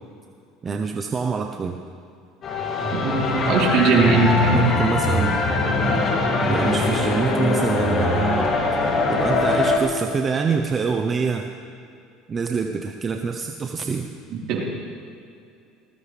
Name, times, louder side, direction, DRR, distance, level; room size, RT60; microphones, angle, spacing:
voice 1, 0.6-1.8 4.5-5.4 6.5-8.5 9.1-11.5 12.3-14.1, right 5 dB, 30° right, 5 dB, 0.9 m, -25 dB
sound 1, 2.4-9.8, left 2 dB, 40° left, 2.8 m, -22 dB
voice 2, 2.9-4.7 14.5-14.6, right 3 dB, 60° right, -3 dB, 4.4 m, -19 dB
20.0 x 18.5 x 3.5 m, 2.5 s
supercardioid pair, 100°, 0 cm